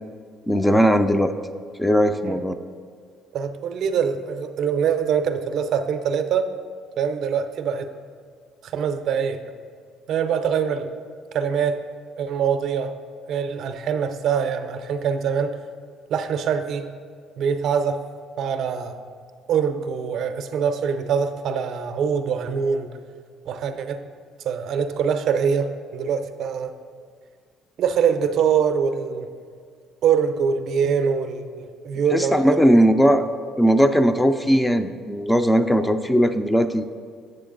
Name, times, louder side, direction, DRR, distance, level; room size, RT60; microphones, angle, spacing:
voice 1, 0.5-1.3 1.8-2.6 32.1-33.3 33.6-36.9, equal, 10° left, 9 dB, 0.4 m, -18 dB
voice 2, 3.3-6.5 7.0-7.9 8.6-9.4 10.1-10.9 11.3-11.8 12.2-12.9 13.3-15.6 16.1-16.9 17.4-18.0 18.4-19.0 19.5-22.9 23.5-24.0 24.4-26.8 27.8-29.3 30.0-32.8, right 7 dB, 60° right, 8 dB, 0.5 m, -24 dB
7.8 x 6.6 x 3.8 m, 2.1 s
cardioid pair, 95°, 0 cm